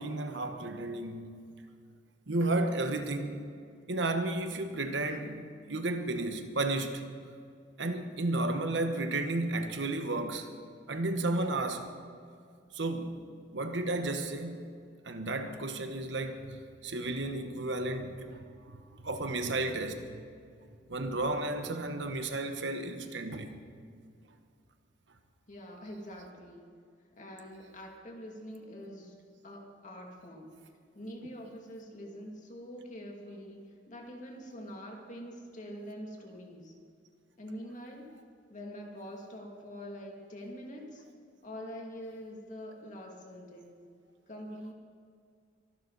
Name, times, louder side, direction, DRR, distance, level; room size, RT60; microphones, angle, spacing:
voice 1, 0.0-1.3 2.3-3.4 3.9-7.0 7.8-10.5 10.9-11.9 12.7-13.3 13.5-14.7 15.0-20.2 20.9-23.6, right 2 dB, 80° right, 1.2 m, -33 dB
voice 2, 25.5-26.7 27.2-29.1 29.4-30.6 30.9-36.7 37.4-38.1 38.5-41.0 41.4-43.8 44.3-44.7, equal, 45° left, 2.5 m, -45 dB
23.5 x 12.0 x 4.1 m
head